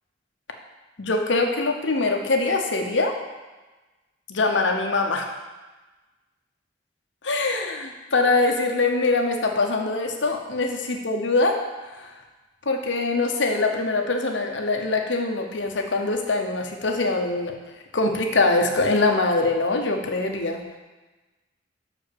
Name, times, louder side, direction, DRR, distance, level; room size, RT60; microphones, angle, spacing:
voice 1, 1.0-3.2 4.3-5.3 7.2-11.6 12.0-12.1 12.7-17.5 17.9-20.8, left 3 dB, 80° left, 3 dB, 1.0 m, -23 dB
6.2 x 5.0 x 6.7 m, 1.2 s
head